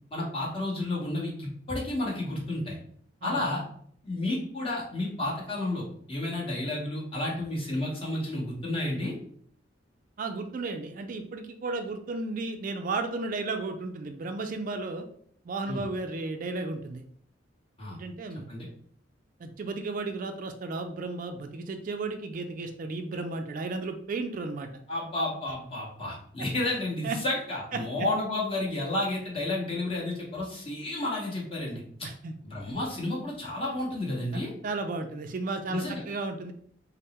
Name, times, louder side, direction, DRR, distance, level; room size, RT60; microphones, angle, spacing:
voice 1, 0.1-2.8 3.2-3.6 4.0-9.1 15.7-15.8 17.8-18.0 18.5-18.7 24.9-32.1 32.4-34.5 35.7-36.0, left 1 dB, 30° left, -4 dB, 1.1 m, -31 dB
voice 2, 10.2-15.1 15.5-17.0 17.9-18.5 19.4-24.7 27.0-27.2 32.0-32.3 34.6-36.5, right 3 dB, 45° right, 6 dB, 0.3 m, -34 dB
3.5 x 2.0 x 4.1 m, 0.63 s
head